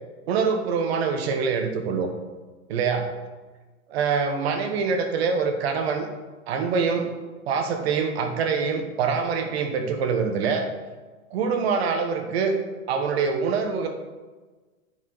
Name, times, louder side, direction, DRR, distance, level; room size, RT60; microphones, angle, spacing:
voice 1, 0.3-2.1 2.7-3.1 3.9-6.1 6.5-7.1 7.5-10.7 11.3-12.5 12.9-13.9, right 5 dB, 45° right, 6 dB, 1.1 m, -24 dB
11.0 x 6.0 x 3.9 m, 1.3 s
hypercardioid pair, 160°, 42 cm